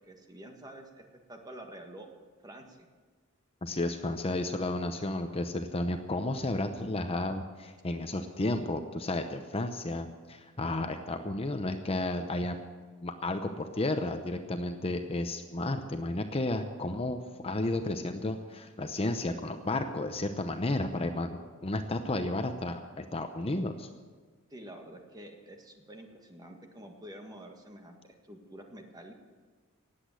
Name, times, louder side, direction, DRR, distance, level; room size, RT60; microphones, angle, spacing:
voice 1, 0.1-2.1 2.4-2.9 24.5-29.1, right 1 dB, 20° right, 3 dB, 1.7 m, -48 dB
voice 2, 3.6-12.6 13.0-23.9, left 2 dB, 30° left, 7 dB, 0.8 m, -32 dB
18.5 x 8.4 x 7.6 m, 1.5 s
head